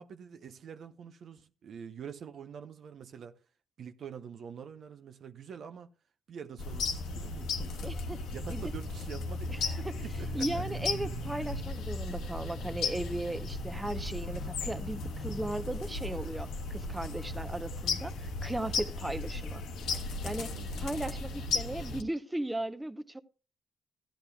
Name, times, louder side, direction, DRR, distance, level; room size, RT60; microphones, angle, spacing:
voice 1, 0.0-3.4 3.8-5.9 6.3-7.9 8.3-10.6 20.5-20.7, right 7 dB, 60° right, 0.7 m, -46 dB
sound 1, 6.6-22.0, left 3 dB, 85° left, 1.2 m, -36 dB
voice 2, 7.8-8.2 8.5-8.6 9.5-9.9 10.3-19.6 20.0-23.2, right 1 dB, 10° right, 0.7 m, -37 dB
15.5 x 11.5 x 2.3 m
cardioid pair, 90°, 0 cm